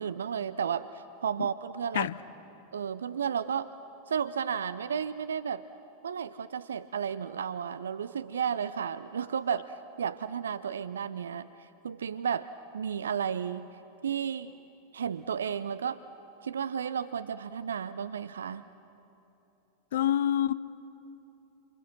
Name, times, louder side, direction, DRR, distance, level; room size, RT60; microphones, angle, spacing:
voice 1, 0.0-2.1 2.7-3.7 4.1-5.7 6.0-13.7 14.0-14.5 14.9-16.0 16.4-18.6, right 7 dB, 65° right, 0.5 m, -33 dB
voice 2, 19.9-20.5, left 11 dB, 60° left, 0.6 m, -26 dB
29.0 x 27.0 x 6.1 m
figure-of-eight pair, 90°, 0 cm